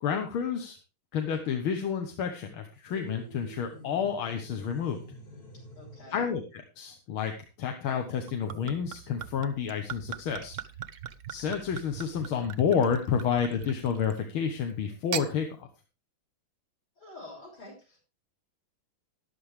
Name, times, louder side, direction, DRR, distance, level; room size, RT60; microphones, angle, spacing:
voice 1, 0.0-0.8 1.1-5.0 6.1-7.3 7.6-10.6 11.3-15.7, left 7 dB, 90° left, 4 dB, 2.1 m, -30 dB
sound 1, 2.9-6.4, right 1 dB, 45° left, 3.0 m, -48 dB
voice 2, 5.8-6.2 17.0-18.0, left 2 dB, 65° left, 1 dB, 7.1 m, -47 dB
Gurgling / Chink clink / Liquid, 8.1-14.2 14.9-15.3, right 10 dB, 65° right, 0.7 m, -40 dB
13.0 x 11.0 x 3.3 m, 0.30 s
omnidirectional pair, 2.2 m